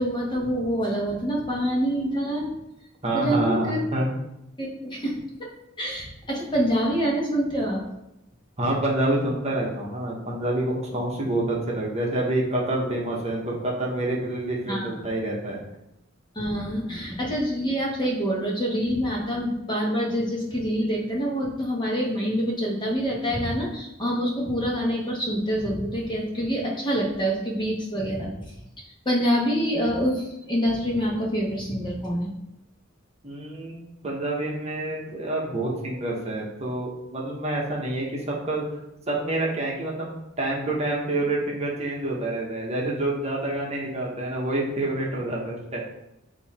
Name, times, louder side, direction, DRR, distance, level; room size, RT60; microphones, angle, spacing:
voice 1, 0.0-2.5 3.1-3.8 4.6-5.1 5.4-5.5 5.8-7.8 14.7-14.9 16.3-28.3 29.0-32.3, equal, 25° left, -3 dB, 1.3 m, -26 dB
voice 2, 3.0-4.1 8.6-15.6 33.2-33.8 34.0-38.6 39.1-45.8, right 1 dB, 35° right, -3 dB, 1.2 m, -27 dB
8.0 x 2.9 x 4.2 m, 0.87 s
head